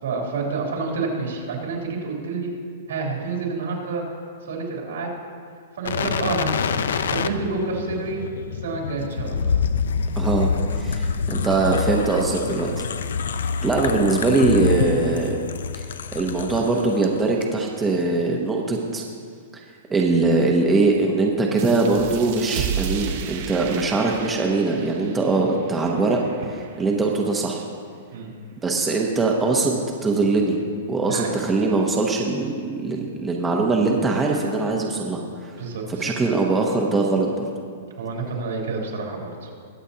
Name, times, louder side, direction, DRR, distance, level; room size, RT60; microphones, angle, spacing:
voice 1, 0.0-2.5 2.9-4.0 4.4-5.1 5.8-6.7 7.1-9.5 28.1-28.3 31.1-31.3 35.6-36.0 38.0-39.5, right 4 dB, 85° right, -2 dB, 3.1 m, -28 dB
sound 1, 5.8-17.1 17.4-17.5, left 6 dB, 85° left, 0.5 m, -26 dB
voice 2, 10.1-12.8 13.6-15.4 15.8-15.9 16.1-19.0 19.5-19.6 19.9-26.2 26.8-27.6 28.6-30.6 30.9-35.2 36.0-37.4, right 3 dB, 10° right, -1 dB, 0.8 m, -22 dB
sound 2, 21.6-26.8, right 7 dB, 45° right, 0.9 m, -33 dB
21.5 x 7.5 x 2.8 m, 2.1 s
hypercardioid pair, 165°, 0 cm